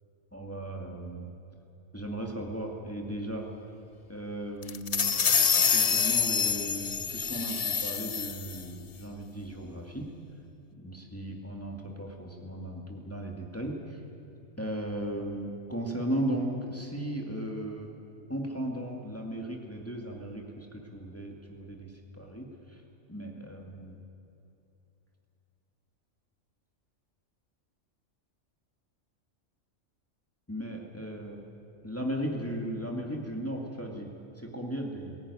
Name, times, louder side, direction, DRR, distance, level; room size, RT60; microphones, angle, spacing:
voice 1, 0.3-1.3 1.9-3.5 4.1-5.2 5.7-10.1 10.8-14.0 14.6-17.9 18.3-22.8 23.1-24.0 30.5-31.5 31.8-34.1 34.4-35.2, right 1 dB, 10° left, 0 dB, 2.2 m, -36 dB
sound 1, 4.6-8.6, left 7 dB, 55° left, 0.4 m, -26 dB
20.0 x 17.5 x 9.8 m, 2.8 s
omnidirectional pair, 1.4 m